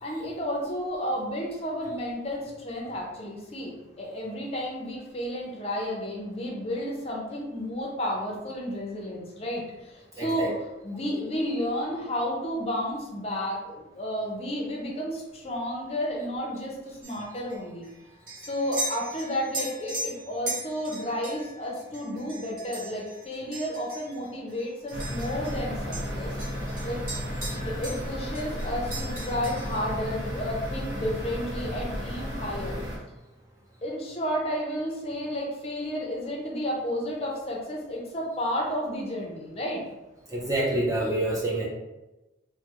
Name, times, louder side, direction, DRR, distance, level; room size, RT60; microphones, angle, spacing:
voice 1, 0.0-17.9 18.4-26.4 26.8-27.0 27.6-32.8 33.8-39.8, equal, 30° left, -2 dB, 0.5 m, -32 dB
voice 2, 10.2-10.5 40.3-41.7, right 1 dB, 15° right, -3 dB, 0.4 m, -27 dB
sound 1, 17.0-25.6 25.9-28.1 28.3-29.9, right 2 dB, 45° right, 1.0 m, -38 dB
sound 2, 24.9-33.0, equal, 65° right, 0.8 m, -33 dB
3.2 x 2.0 x 2.9 m, 1.0 s
head